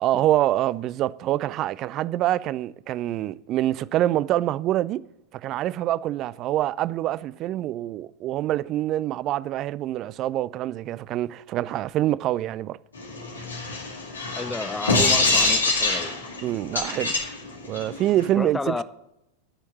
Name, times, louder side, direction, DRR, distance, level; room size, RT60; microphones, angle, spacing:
voice 1, 0.0-5.0 5.3-12.8 16.4-17.2 17.6-18.8, right 13 dB, 35° right, 0.4 m, -25 dB
sound 1, 13.0-18.3, left 3 dB, 75° left, 2.2 m, -25 dB
voice 2, 14.4-16.2 18.4-18.8, left 3 dB, 10° left, 0.7 m, -31 dB
11.0 x 6.4 x 9.1 m
figure-of-eight pair, 90°, 0 cm